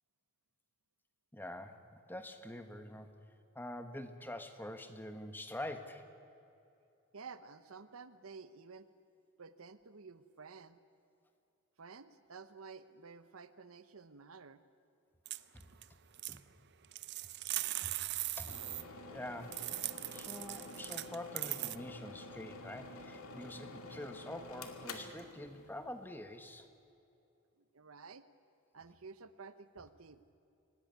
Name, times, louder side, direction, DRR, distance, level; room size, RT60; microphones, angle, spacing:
voice 1, 1.3-3.1 3.5-6.1 15.5-15.7 16.3-16.4 17.8-17.9 18.3-18.6 19.1-19.7 20.1-26.7, left 1 dB, 10° left, 8 dB, 1.4 m, -46 dB
voice 2, 7.1-8.9 9.4-10.8 11.8-14.6 27.6-28.3 28.7-30.3, right 5 dB, 80° right, 12 dB, 0.9 m, -52 dB
sound 1, 15.3-15.9 16.1-16.4 16.8-18.8 19.5-21.8, right 16 dB, 50° right, 0.6 m, -39 dB
sound 2, 18.5-26.1, left 2 dB, 85° left, 2.3 m, -49 dB
26.0 x 18.5 x 9.5 m, 2.8 s
head